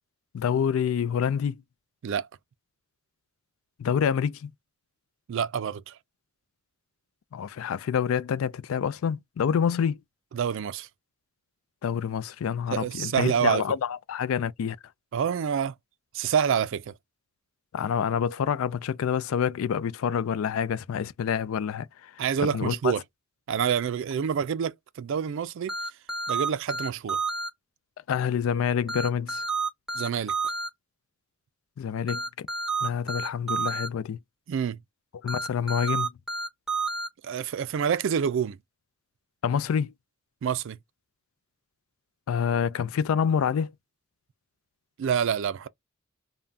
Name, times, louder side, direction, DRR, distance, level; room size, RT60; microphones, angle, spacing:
voice 1, 0.3-1.6 3.8-4.5 7.3-10.0 11.8-14.8 17.7-22.9 28.1-29.4 31.8-32.5 32.8-34.2 35.2-36.1 39.4-39.9 42.3-43.7, left 7 dB, 85° left, 0.3 m, -27 dB
voice 2, 5.3-6.0 10.3-10.9 12.7-13.6 15.1-15.7 16.1-16.9 22.2-23.0 23.5-25.7 26.3-27.2 29.9-30.3 34.5-34.8 37.2-38.6 40.4-40.8 45.0-45.7, right 7 dB, 65° right, 0.3 m, -27 dB
sound 1, 25.7-27.5 28.9-30.7 32.1-33.9 35.3-37.1, right 4 dB, 5° right, 0.9 m, -29 dB
3.3 x 2.2 x 2.4 m
head